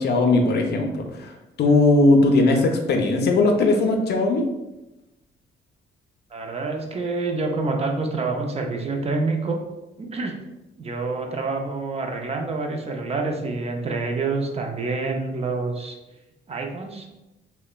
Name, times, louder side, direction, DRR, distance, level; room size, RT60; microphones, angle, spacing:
voice 1, 0.0-1.3 1.6-4.4, left 2 dB, 55° left, 3 dB, 0.4 m, -19 dB
voice 2, 6.3-9.6 10.0-10.3 10.8-16.0 16.5-17.1, right 3 dB, 30° right, 3 dB, 0.4 m, -27 dB
2.9 x 2.1 x 2.2 m, 0.99 s
cardioid pair, 90°, 20 cm